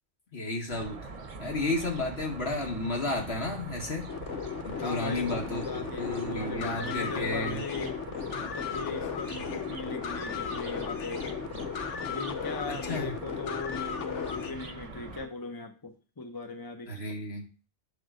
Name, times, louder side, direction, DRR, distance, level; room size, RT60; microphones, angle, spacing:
voice 1, 0.3-1.0 1.4-4.1 4.6-7.6 12.7-13.1 16.9-17.5, left 2 dB, 60° left, 0 dB, 2.0 m, -32 dB
sound 1, 0.7-15.3, right 4 dB, 35° right, 0.8 m, -43 dB
sound 2, 4.1-14.5, left 7 dB, 80° left, 1.1 m, -36 dB
voice 2, 4.8-8.0 8.4-11.4 12.1-16.9, left 3 dB, 25° left, 6 dB, 0.7 m, -39 dB
7.8 x 3.9 x 6.3 m, 0.36 s
omnidirectional pair, 1.2 m